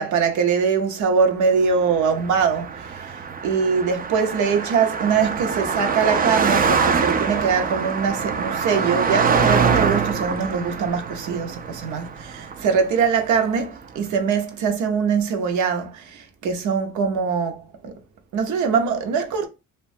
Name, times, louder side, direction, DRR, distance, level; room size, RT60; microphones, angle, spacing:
voice 1, 0.0-17.9 18.3-19.5, right 6 dB, 75° right, 0.7 m, -22 dB
Car passing by, 1.8-13.4, right 5 dB, 30° right, 0.3 m, -24 dB
2.9 x 2.2 x 2.6 m
cardioid pair, 90°, 30 cm